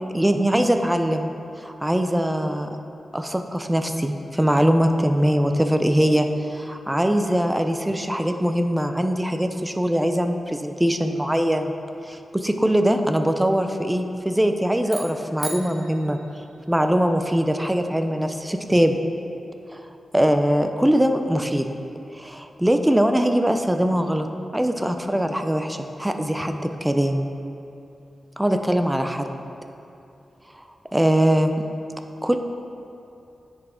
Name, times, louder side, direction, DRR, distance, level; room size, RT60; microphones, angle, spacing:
voice 1, 0.1-1.3 1.6-2.7 3.1-11.7 12.1-16.2 16.7-19.0 19.7-19.8 20.1-21.7 22.2-24.3 24.5-27.3 28.4-29.3 30.9-31.6 32.2-32.4, equal, 10° right, 6 dB, 0.4 m, -22 dB
sound 1, 14.8-17.1, right 3 dB, 45° right, 0.7 m, -38 dB
9.7 x 4.8 x 3.6 m, 2.8 s
wide cardioid pair, 130°, 0 cm